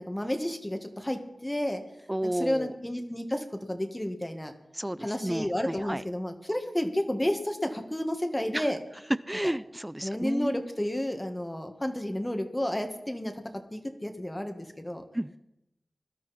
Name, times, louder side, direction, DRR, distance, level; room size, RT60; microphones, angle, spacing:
voice 1, 0.0-1.8 2.2-4.5 5.0-8.8 10.0-13.3 13.7-15.0, left 1 dB, 15° left, 1.8 m, -31 dB
voice 2, 2.1-2.7 4.7-6.0 8.5-8.7 9.3-10.6 15.1-15.4, right 1 dB, 15° right, 0.6 m, -32 dB
20.5 x 12.5 x 4.3 m
wide cardioid pair, 55°, 0 cm